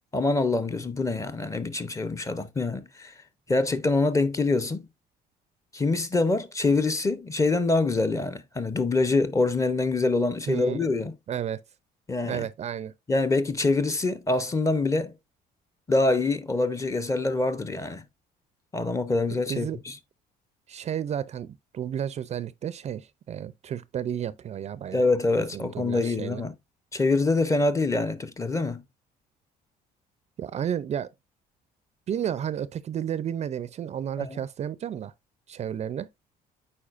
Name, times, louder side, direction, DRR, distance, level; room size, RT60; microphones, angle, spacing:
voice 1, 0.1-3.1 3.5-4.9 5.7-11.1 12.1-12.5 13.1-15.1 15.9-18.0 18.7-19.9 24.9-26.5 26.9-28.8 34.2-34.4, left 3 dB, 20° left, 0.7 m, -25 dB
voice 2, 10.5-10.9 11.3-11.6 12.2-12.9 19.5-19.8 20.7-25.0 25.5-26.4 30.4-31.1 32.1-35.1 35.5-36.1, right 9 dB, 40° right, 0.4 m, -32 dB
8.7 x 4.4 x 2.4 m
cardioid pair, 110°, 17 cm